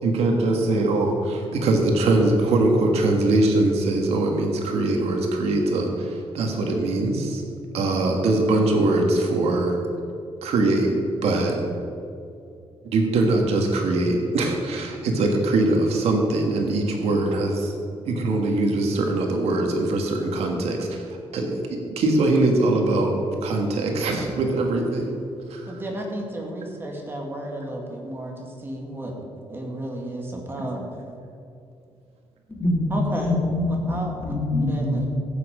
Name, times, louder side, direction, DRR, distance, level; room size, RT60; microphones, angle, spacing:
voice 1, 0.0-7.4 7.7-9.8 10.4-11.6 12.8-17.8 18.1-21.0 21.3-25.2 25.5-25.7, right 2 dB, 80° right, 2 dB, 1.9 m, -22 dB
voice 2, 25.7-29.1 29.5-30.8 32.9-33.4 33.9-34.1 34.6-35.1, right 1 dB, 20° right, 0 dB, 2.2 m, -32 dB
voice 3, 32.6-35.0, left 1 dB, 15° left, -4 dB, 3.5 m, -24 dB
15.0 x 8.8 x 5.1 m, 2.6 s
cardioid pair, 135°, 10 cm